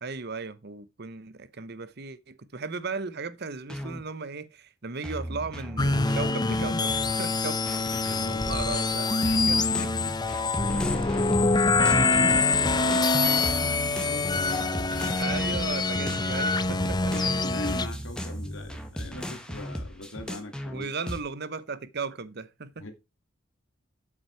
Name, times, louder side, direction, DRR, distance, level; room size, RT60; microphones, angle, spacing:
voice 1, 0.0-7.6 8.5-10.1 15.2-17.0 20.7-22.9, right 4 dB, 55° right, 0.9 m, -36 dB
sound 1, 3.7-4.0 5.0-7.1 7.7-13.2 13.4-15.8 16.1-21.2, equal, 5° left, 1.5 m, -37 dB
sound 2, 5.8-17.9, left 3 dB, 20° left, 0.7 m, -25 dB
voice 2, 8.0-8.5 10.6-15.4 15.8-16.1 17.1-20.9 22.8-22.9, left 2 dB, 80° left, 2.4 m, -42 dB
8.3 x 7.2 x 4.5 m
head